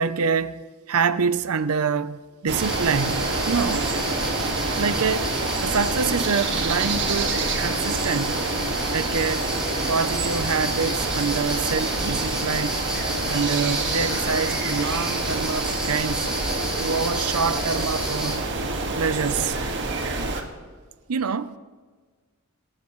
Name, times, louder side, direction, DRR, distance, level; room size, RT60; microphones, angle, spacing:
voice 1, 0.0-3.9 4.8-5.3 5.6-8.4 8.9-9.5 9.9-12.8 13.3-16.3 16.8-18.4 19.0-19.6 21.1-21.6, right 5 dB, 80° right, 0.6 m, -26 dB
sound 1, 2.5-20.4, right 3 dB, 55° right, 1.9 m, -27 dB
sound 2, 2.6-18.4, equal, 5° right, 4.8 m, -32 dB
sound 3, 3.5-12.3, equal, 10° left, 2.2 m, -44 dB
27.5 x 15.0 x 3.1 m
head